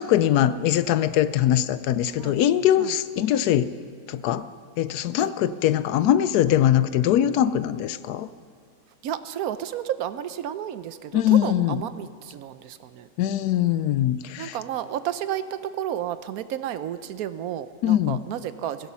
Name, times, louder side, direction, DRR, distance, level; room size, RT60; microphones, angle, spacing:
voice 1, 0.0-3.7 4.1-4.5 4.8-8.3 11.1-11.8 13.2-14.6 17.8-18.2, left 11 dB, 75° left, 14 dB, 1.1 m, -22 dB
voice 2, 9.0-13.1 14.4-18.9, right 11 dB, 70° right, 13 dB, 1.1 m, -32 dB
16.0 x 15.5 x 5.6 m, 2.2 s
omnidirectional pair, 1.8 m